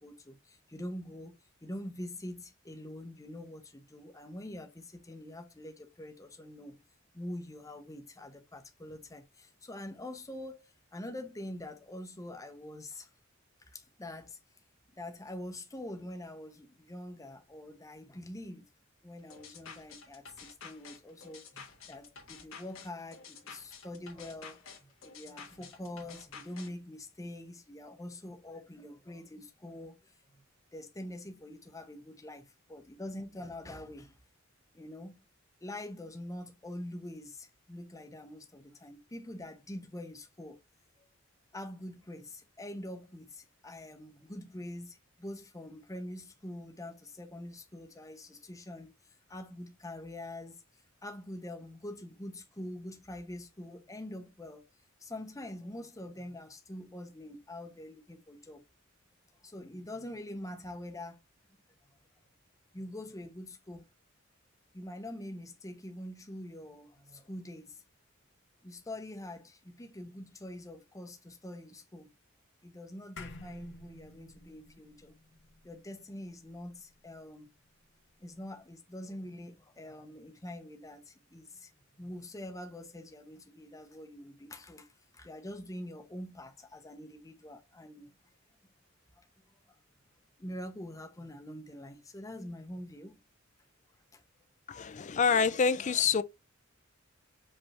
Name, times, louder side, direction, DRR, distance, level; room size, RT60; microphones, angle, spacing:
voice 1, 0.0-6.8 7.1-13.1 13.7-14.4 14.9-18.6 19.0-30.1 30.7-34.2 34.7-35.3 35.6-40.6 41.5-48.9 49.3-50.6 51.0-54.7 55.0-58.6 59.4-61.2 62.7-63.9 64.7-67.8 68.6-72.1 72.6-75.2 75.6-77.5 78.2-81.7 82.0-84.9 85.1-88.1 89.2-89.3 90.4-93.2 94.1-94.2, left 1 dB, 15° left, 0.8 m, -45 dB
sound 1, 19.3-26.7, left 6 dB, 80° left, 1.4 m, -50 dB
sound 2, 73.2-77.8, left 2 dB, 60° left, 0.9 m, -52 dB
voice 2, 94.7-96.2, left 6 dB, 35° left, 0.4 m, -27 dB
5.2 x 3.4 x 2.8 m
head